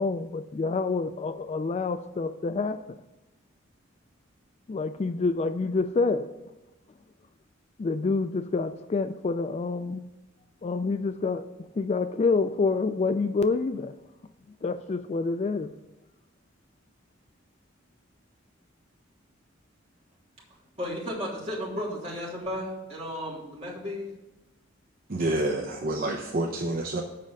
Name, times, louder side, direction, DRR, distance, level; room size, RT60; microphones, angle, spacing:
voice 1, 0.0-3.0 4.7-6.3 7.8-10.1 10.6-11.5 11.7-14.0 14.6-15.7, left 4 dB, 35° left, 11 dB, 0.3 m, -27 dB
voice 2, 20.8-24.1, equal, 30° right, -6 dB, 3.0 m, -34 dB
voice 3, 25.1-27.0, right 2 dB, 45° right, 2 dB, 0.7 m, -28 dB
7.5 x 5.2 x 7.3 m, 1.0 s
head